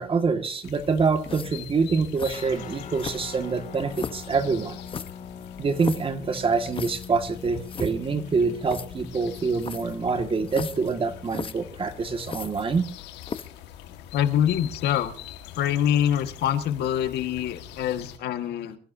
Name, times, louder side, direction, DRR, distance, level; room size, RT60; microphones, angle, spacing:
voice 1, 0.0-4.8 5.6-12.9, right 4 dB, 30° right, 7 dB, 1.9 m, -26 dB
sound 1, 0.6-18.2, left 11 dB, 90° left, 1.7 m, -44 dB
sound 2, 1.2-1.7 2.2-2.5 3.0-3.5 3.9-4.3 4.9-6.1 6.7-7.1 7.4-7.5 7.7-7.9 8.7-8.9 9.6-10.0 10.5-10.9 11.3-11.5 12.2-12.9 13.2-13.6, left 6 dB, 30° left, 1.0 m, -36 dB
Guitar, 2.3-11.4, left 6 dB, 50° left, 2.1 m, -43 dB
voice 2, 14.1-15.1 15.6-18.8, left 10 dB, 75° left, 8 dB, 1.7 m, -25 dB
25.5 x 14.5 x 2.7 m, 0.42 s
cardioid pair, 110°, 17 cm